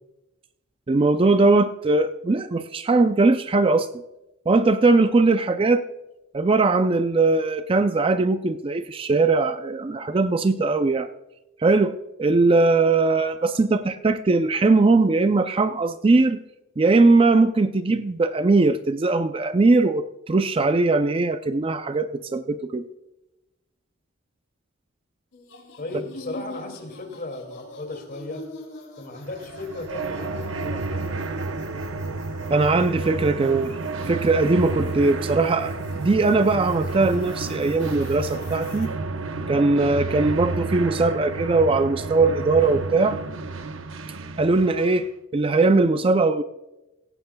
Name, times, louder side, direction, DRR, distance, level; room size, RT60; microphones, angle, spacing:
voice 1, 0.9-3.9 4.5-5.8 6.3-11.1 11.6-16.4 16.8-22.8 32.5-33.8 34.1-38.9 39.5-43.2 44.4-46.4, right 3 dB, 25° right, 10 dB, 0.4 m, -20 dB
sound 1, 25.3-38.9, left 2 dB, 65° left, 2.9 m, -43 dB
voice 2, 25.8-28.4 29.0-31.3, left 2 dB, 45° left, 4 dB, 2.3 m, -36 dB
sound 2, 29.3-45.1, right 3 dB, 65° right, 0.8 m, -31 dB
17.0 x 15.0 x 2.3 m, 0.97 s
head